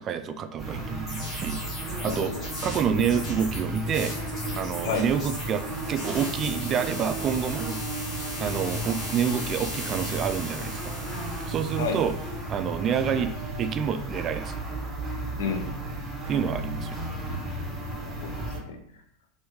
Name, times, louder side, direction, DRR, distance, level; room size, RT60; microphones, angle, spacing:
voice 1, 0.0-2.3 2.6-4.1 4.6-7.8 8.4-10.9 11.5-12.1 12.5-13.3 13.6-14.6 16.3-17.1, right 7 dB, 40° right, 9 dB, 0.3 m, -28 dB
sound 1, 0.6-18.6, right 2 dB, 10° right, 1.3 m, -34 dB
sound 2, 1.1-12.5, left 2 dB, 40° left, 1.4 m, -38 dB
voice 2, 2.0-2.5 4.8-5.0 11.8-12.0 15.4-15.7 18.0-18.8, left 6 dB, 75° left, 5 dB, 0.5 m, -31 dB
2.9 x 2.7 x 3.5 m, 0.69 s
hypercardioid pair, 100°, 0 cm